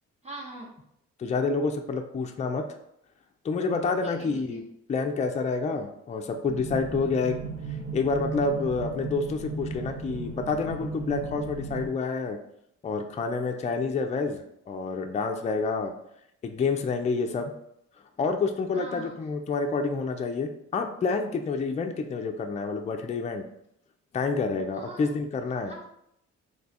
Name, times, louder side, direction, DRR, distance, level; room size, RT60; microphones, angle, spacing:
voice 1, 0.2-0.7 4.0-4.6 18.7-19.1 24.8-25.1 25.7-25.8, right 2 dB, 20° right, -3 dB, 0.8 m, -42 dB
voice 2, 1.2-2.7 3.4-4.6 4.9-7.4 7.9-12.4 12.8-14.4 14.7-15.9 16.4-17.5 18.2-23.4 24.1-25.7, left 4 dB, 25° left, 4 dB, 0.4 m, -28 dB
sound 1, 6.4-11.9, right 4 dB, 55° right, 0.7 m, -36 dB
2.9 x 2.3 x 4.1 m, 0.76 s
cardioid pair, 90°, 30 cm